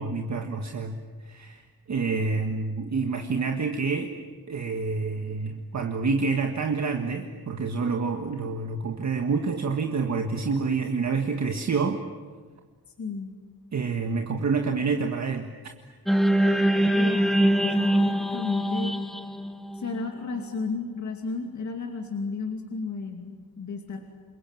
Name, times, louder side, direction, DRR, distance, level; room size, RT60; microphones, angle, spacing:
voice 1, 0.0-1.6 1.9-4.1 4.5-12.0 13.7-15.5, right 4 dB, 45° right, 4 dB, 1.6 m, -28 dB
voice 2, 13.0-13.3 16.9-17.3 17.6-18.9 19.7-24.0, left 4 dB, 50° left, 3 dB, 2.6 m, -33 dB
sound 1, 16.1-20.4, right 1 dB, ahead, 1.3 m, -23 dB
28.0 x 23.0 x 9.2 m, 1.4 s
wide cardioid pair, 170°, 38 cm